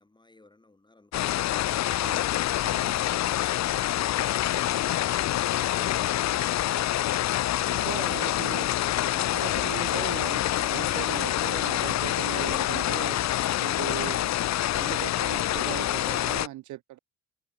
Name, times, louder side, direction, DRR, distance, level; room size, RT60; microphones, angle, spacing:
voice 1, 0.0-1.4 1.9-7.0, left 2 dB, 15° left, 1.9 m, -53 dB
sound 1, 1.1-16.5, left 13 dB, 65° left, 0.7 m, -26 dB
voice 2, 2.6-3.0 7.6-8.7 9.1-14.2 14.7-17.0, right 15 dB, 75° right, 0.8 m, -39 dB
cardioid pair, 90°, 30 cm